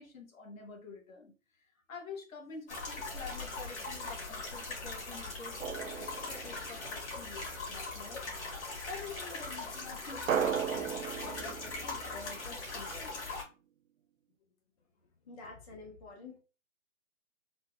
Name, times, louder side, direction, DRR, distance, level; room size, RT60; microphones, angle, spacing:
voice 1, 0.0-8.2 8.9-13.4, left 4 dB, 80° left, 1.2 m, -48 dB
sound 1, 2.7-13.4, left 3 dB, 55° left, 1.7 m, -40 dB
Drum, 5.6-7.2 10.3-13.0, right 8 dB, 75° right, 0.5 m, -36 dB
voice 2, 15.3-16.4, left 3 dB, 30° left, 0.6 m, -48 dB
4.0 x 2.1 x 2.3 m
hypercardioid pair, 150°, 40 cm